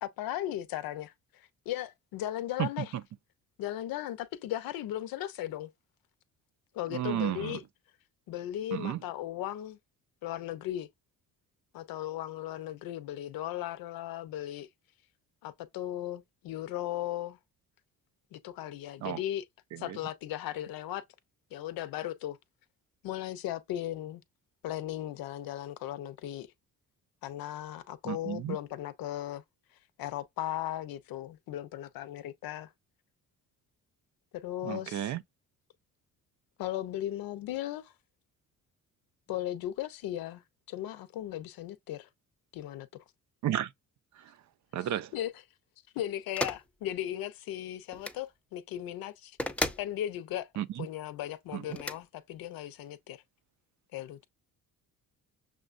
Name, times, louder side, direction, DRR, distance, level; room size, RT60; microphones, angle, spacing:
voice 1, 0.0-2.9 3.6-5.7 6.7-7.6 8.3-9.8 10.2-10.9 11.7-14.7 15.4-17.4 18.3-19.4 19.8-21.0 21.5-22.4 23.0-24.2 24.6-26.5 27.2-29.4 30.0-32.7 34.3-35.1 36.6-37.9 39.3-40.4 40.7-42.1 42.5-42.9 45.1-45.3 45.9-49.4 49.8-50.5 50.8-53.2 53.9-54.2, left 13 dB, 85° left, 0.7 m, -37 dB
voice 2, 6.9-7.6 8.7-9.0 19.0-19.2 19.7-20.0 28.0-28.6 34.6-35.2 43.4-43.7 44.2-44.3 44.7-45.1 50.6-50.9 51.5-51.6, right 12 dB, 55° right, 0.5 m, -33 dB
sound 1, 46.4-46.6 47.9-48.2 49.4-49.9 51.7-52.0, left 1 dB, 5° left, 0.4 m, -33 dB
6.2 x 2.2 x 2.5 m
cardioid pair, 110°, 34 cm